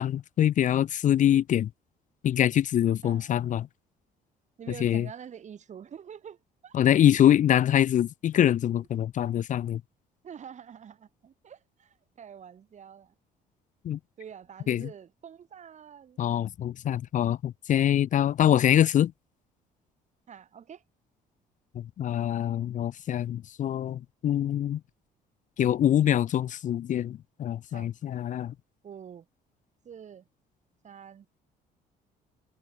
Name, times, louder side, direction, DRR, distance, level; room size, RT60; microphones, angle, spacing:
voice 1, 0.0-1.7 2.2-3.7 4.8-5.1 6.7-9.8 13.8-14.0 14.7-14.9 16.2-19.1 21.7-24.8 25.6-28.5, left 11 dB, 50° left, 0.6 m, -24 dB
voice 2, 3.0-3.4 4.6-6.8 8.7-8.9 10.2-13.1 14.2-16.2 20.3-20.8 27.7-27.9 28.8-29.3 29.8-30.3 30.8-31.3, right 8 dB, 45° right, 4.2 m, -46 dB
cardioid pair, 110°, 17 cm